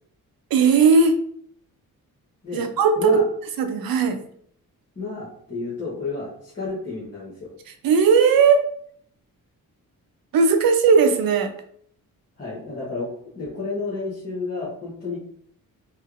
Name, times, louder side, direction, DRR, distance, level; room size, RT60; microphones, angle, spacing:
voice 1, 0.5-1.2 2.5-3.2 3.6-4.2 7.8-8.6 10.3-11.5, right 5 dB, 75° right, 7 dB, 0.6 m, -17 dB
voice 2, 4.9-7.5 12.4-13.1 13.3-15.2, left 3 dB, 25° left, -8 dB, 1.1 m, -31 dB
3.1 x 3.1 x 2.5 m, 0.63 s
cardioid pair, 110°, 36 cm